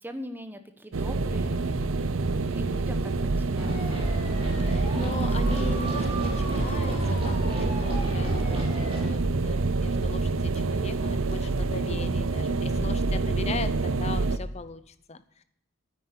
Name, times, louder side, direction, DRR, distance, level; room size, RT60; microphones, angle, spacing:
voice 1, 0.0-2.0 2.5-3.1 3.4-4.0, equal, 10° right, 8 dB, 1.0 m, -42 dB
sound 1, 0.9-14.4, right 3 dB, 75° right, 0.7 m, -27 dB
sound 2, 3.6-9.1, equal, 25° right, 3.3 m, -33 dB
voice 2, 4.6-15.4, left 3 dB, 30° left, 13 dB, 0.6 m, -39 dB
Drum kit, 4.9-7.4, equal, 10° left, 1.6 m, -45 dB
9.8 x 9.3 x 8.2 m, 0.76 s
head